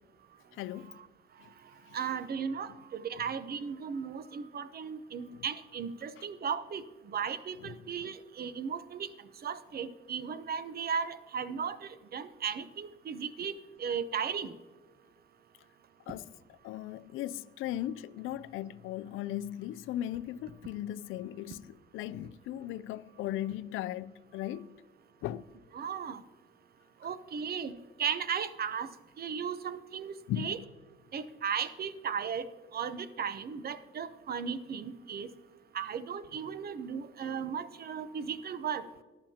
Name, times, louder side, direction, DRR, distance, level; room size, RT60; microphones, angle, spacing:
voice 1, 0.6-0.9 16.1-16.2 16.6-21.7 21.9-24.7 25.2-25.5 30.3-30.6, left 12 dB, 90° left, 0.4 m, -37 dB
voice 2, 1.9-6.8 7.1-9.1 9.4-13.5 13.8-14.5 25.7-26.2 27.0-27.7 28.0-28.9 29.2-30.6 31.1-32.5 32.7-35.3 35.7-38.8, right 7 dB, 50° right, 0.8 m, -36 dB
18.5 x 11.5 x 2.9 m
cardioid pair, 90°, 20 cm